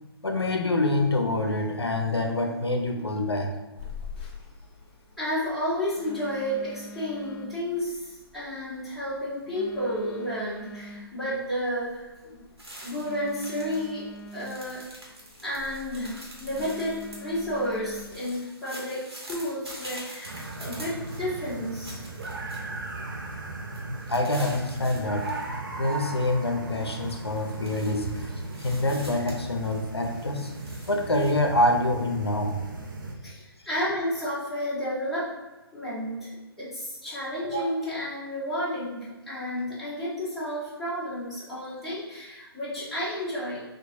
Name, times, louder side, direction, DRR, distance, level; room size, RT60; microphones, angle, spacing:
voice 1, 0.2-3.5 23.8-25.3 25.8-30.5 30.9-32.6, left 1 dB, 80° left, 3 dB, 0.5 m, -26 dB
Telephone, 3.8-18.2, left 1 dB, 25° left, 0.5 m, -44 dB
voice 2, 5.2-12.4 12.8-14.0 14.3-14.8 15.4-22.0 33.2-35.3 35.7-36.3 36.6-43.6, equal, ahead, -13 dB, 1.1 m, -31 dB
sound 1, 12.6-13.9 14.2-22.9 23.3-23.4 23.7-25.5 25.8-26.3 26.7-31.3, right 1 dB, 75° right, 1.3 m, -46 dB
sound 2, 20.2-33.1, right 2 dB, 50° right, 0.5 m, -37 dB
4.5 x 2.5 x 2.7 m, 1.1 s
figure-of-eight pair, 135°, 13 cm